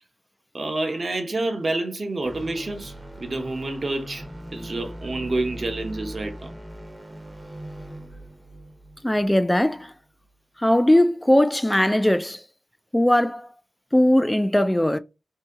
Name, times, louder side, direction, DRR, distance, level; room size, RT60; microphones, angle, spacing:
voice 1, 0.5-4.2 4.5-6.6, right 2 dB, 50° right, 0.8 m, -28 dB
sound 1, 2.2-10.4, equal, 15° right, 0.7 m, -41 dB
voice 2, 9.0-9.9 10.6-12.4 12.9-13.5 13.9-15.0, left 1 dB, 10° left, 0.3 m, -19 dB
2.7 x 2.7 x 3.4 m
wide cardioid pair, 110°, 0 cm